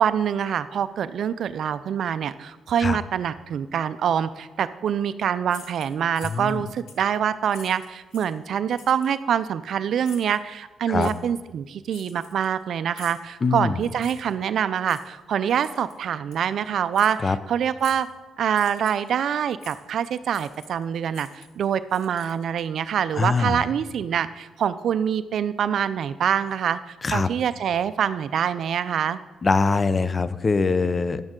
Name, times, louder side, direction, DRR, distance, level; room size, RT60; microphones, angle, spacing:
voice 1, 0.0-18.1 18.4-29.2, right 8 dB, 65° right, 13 dB, 0.3 m, -25 dB
sound 1, 5.5-6.6 6.9-7.1 7.5-8.4 8.8-9.1 10.0-10.4 11.0-11.2 11.9-12.6 12.9-13.3 14.0-14.3 14.9-15.1 15.6-16.0 16.3-16.5 16.9-17.2 17.8-18.1 18.5-19.1 19.6-19.8 20.3-20.8 21.1-22.6, left 6 dB, 80° left, 1.1 m, -46 dB
voice 2, 6.2-6.6 10.9-11.1 13.4-13.8 17.2-17.4 23.2-23.6 27.0-27.3 29.4-31.2, left 4 dB, 30° left, 14 dB, 0.5 m, -23 dB
10.5 x 8.8 x 3.7 m, 1.1 s
cardioid pair, 90°, 0 cm